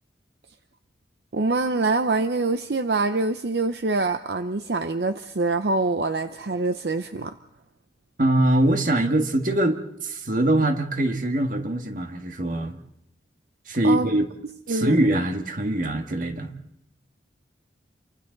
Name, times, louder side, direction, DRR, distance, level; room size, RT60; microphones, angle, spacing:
voice 1, 1.3-7.4 13.8-14.1 14.7-15.0, right 3 dB, 70° right, 9 dB, 0.7 m, -25 dB
voice 2, 8.2-12.8 13.7-14.3 14.7-16.5, right 1 dB, 50° right, 6 dB, 1.7 m, -23 dB
29.0 x 24.5 x 4.0 m, 0.80 s
head